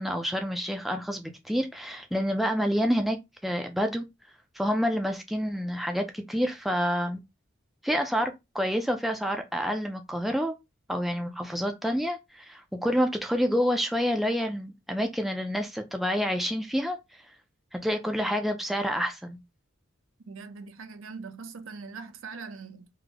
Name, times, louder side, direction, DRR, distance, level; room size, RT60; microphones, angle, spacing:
voice 1, 0.0-3.2 3.4-4.0 4.6-7.2 7.8-10.5 10.9-17.0 17.7-19.4, equal, ahead, 0.3 m, -28 dB
voice 2, 20.3-22.9, right 4 dB, 85° right, 0.5 m, -41 dB
3.2 x 2.0 x 3.5 m
head